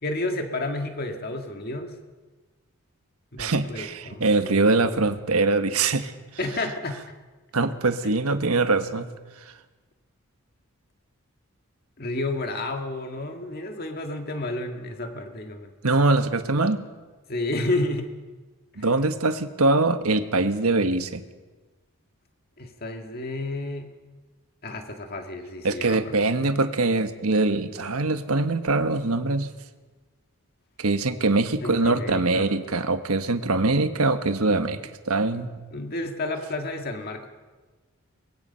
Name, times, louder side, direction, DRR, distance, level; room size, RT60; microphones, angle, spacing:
voice 1, 0.0-2.0 3.3-4.7 6.4-7.0 8.0-8.1 12.0-15.7 17.3-18.2 18.8-18.9 22.6-23.9 24.6-26.1 31.6-32.5 35.7-37.3, left 2 dB, 45° left, 4 dB, 1.9 m, -31 dB
voice 2, 3.4-6.1 7.5-9.1 15.8-16.8 18.8-21.3 25.6-29.5 30.8-34.8 35.1-35.6, right 3 dB, 80° right, 9 dB, 1.4 m, -23 dB
24.0 x 20.5 x 5.7 m, 1.3 s
head